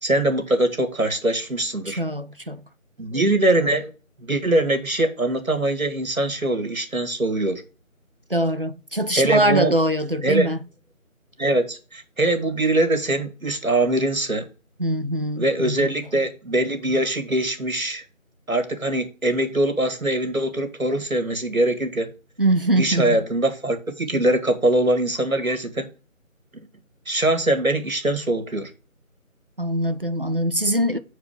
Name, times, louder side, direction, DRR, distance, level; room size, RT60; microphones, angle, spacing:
voice 1, 0.0-2.0 3.0-3.9 4.2-7.6 9.1-9.7 10.2-10.5 11.4-14.5 15.4-18.0 18.5-22.1 22.8-25.9 27.1-28.7, right 1 dB, 75° right, 2.5 m, -22 dB
voice 2, 1.9-2.6 8.3-10.6 14.8-16.0 22.4-23.2 29.6-31.0, right 1 dB, 40° right, 0.6 m, -23 dB
8.0 x 4.8 x 5.1 m
figure-of-eight pair, 165°, 41 cm